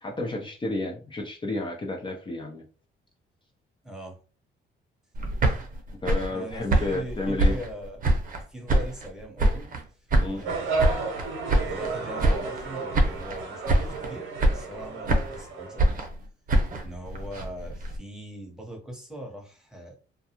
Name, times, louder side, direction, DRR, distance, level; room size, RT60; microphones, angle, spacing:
voice 1, 0.0-2.6 6.0-7.6 10.2-10.5, left 2 dB, 25° left, 1 dB, 0.5 m, -31 dB
voice 2, 3.8-4.2 6.3-8.0 8.4-10.8 11.0-16.0 16.8-19.9, right 1 dB, 5° right, 0 dB, 1.0 m, -41 dB
sound 1, 5.1-8.4 8.7-9.8 10.1-11.9 12.2-12.7 12.9-13.4 13.7-14.1 14.4-15.4 15.8-18.0, right 1 dB, 45° right, 0.7 m, -25 dB
sound 2, 10.4-15.9, right 4 dB, 85° right, 0.8 m, -32 dB
2.3 x 2.2 x 2.9 m, 0.36 s
cardioid pair, 90°, 20 cm